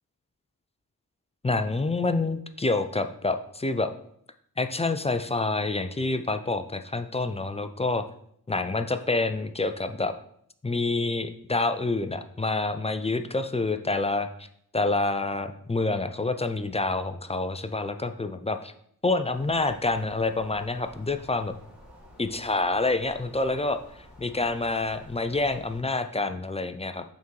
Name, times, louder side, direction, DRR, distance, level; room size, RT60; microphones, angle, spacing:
voice 1, 1.4-3.9 4.6-8.0 8.5-10.1 10.6-14.5 14.7-18.7 19.0-21.5 22.2-23.8 24.2-27.0, left 3 dB, 15° left, 9 dB, 0.4 m, -27 dB
sound 1, 19.3-25.8, equal, 5° right, 2.0 m, -51 dB
5.7 x 3.8 x 4.5 m, 0.67 s
wide cardioid pair, 70°, 37 cm